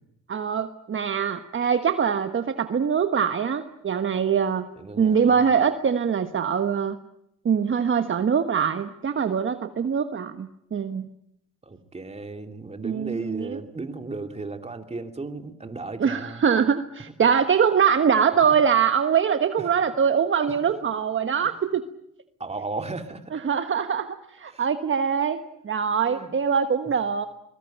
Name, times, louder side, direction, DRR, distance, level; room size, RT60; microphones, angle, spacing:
voice 1, 0.3-4.7 5.0-7.0 7.4-11.1 12.8-13.6 16.0-21.8 23.3-27.3, right 7 dB, 40° right, 8 dB, 1.3 m, -23 dB
voice 2, 4.8-5.4 11.7-16.4 22.4-23.3 24.5-24.6 26.1-26.3, right 3 dB, 20° right, 6 dB, 2.7 m, -35 dB
22.5 x 21.0 x 9.1 m, 0.78 s
cardioid pair, 90°, 30 cm